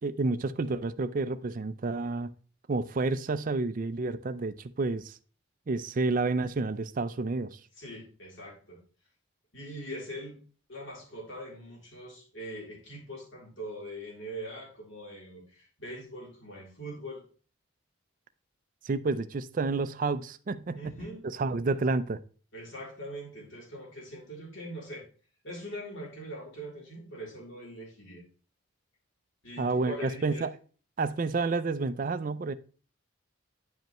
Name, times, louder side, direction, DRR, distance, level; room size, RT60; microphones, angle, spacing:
voice 1, 0.0-2.3 2.7-5.2 5.7-7.6 18.8-21.0 21.4-22.2 29.6-30.5 31.0-32.5, right 3 dB, 40° right, 0.4 m, -30 dB
voice 2, 7.8-8.8 9.5-10.4 10.7-17.2 20.7-21.2 22.5-25.1 25.4-28.2 29.4-30.4, equal, 60° left, 3.2 m, -42 dB
10.0 x 5.3 x 3.0 m
head